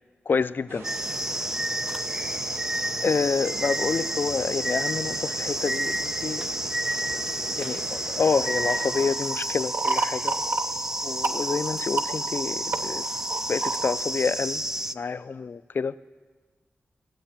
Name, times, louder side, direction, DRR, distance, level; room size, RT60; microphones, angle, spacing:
voice 1, 0.3-0.9 3.0-6.5 7.1-7.2 7.5-10.3 11.0-13.0 13.5-14.6 14.9-15.9, left 5 dB, 55° left, 15 dB, 0.4 m, -28 dB
sound 1, 0.7-9.1, right 3 dB, 85° right, 1.0 m, -41 dB
sound 2, 0.8-14.9, right 1 dB, 10° right, 0.4 m, -30 dB
sound 3, 8.3-14.0, right 3 dB, 60° right, 0.7 m, -31 dB
16.0 x 7.7 x 8.8 m, 1.4 s
wide cardioid pair, 90°, 4 cm